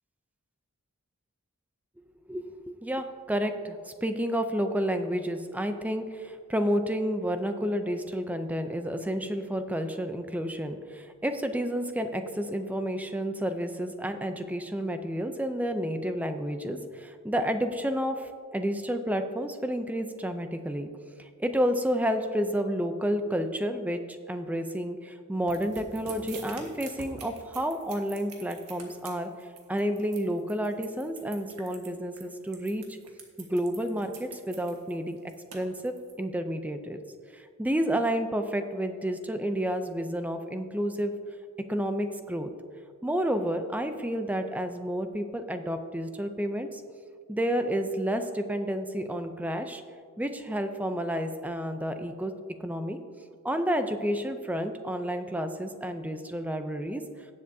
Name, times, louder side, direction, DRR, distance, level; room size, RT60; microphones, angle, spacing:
voice 1, 2.3-20.9 21.2-29.3 29.7-32.8 33.4-37.0 37.3-41.1 41.7-42.5 43.0-46.8 47.3-49.8 50.2-52.3 52.6-53.0 53.4-57.0, equal, 5° right, 7 dB, 0.5 m, -30 dB
sound 1, 25.5-36.1, right 4 dB, 85° right, 1.6 m, -46 dB
17.5 x 7.6 x 2.7 m, 2.1 s
head